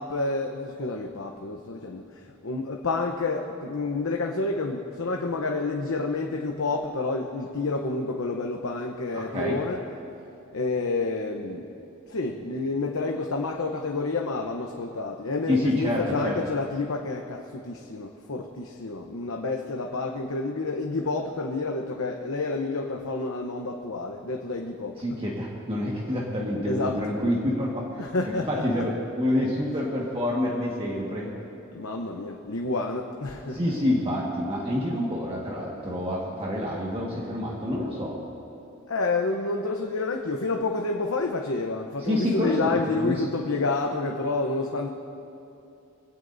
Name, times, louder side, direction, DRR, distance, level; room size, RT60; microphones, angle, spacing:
voice 1, 0.0-9.8 10.5-11.7 12.1-25.2 26.7-27.1 28.0-28.9 31.7-33.7 38.9-44.9, left 3 dB, 85° left, 1 dB, 0.9 m, -29 dB
voice 2, 9.1-9.6 15.5-16.4 25.0-31.3 33.5-38.2 42.0-43.2, left 1 dB, 25° right, -4 dB, 1.6 m, -27 dB
23.5 x 17.0 x 2.7 m, 2.7 s
head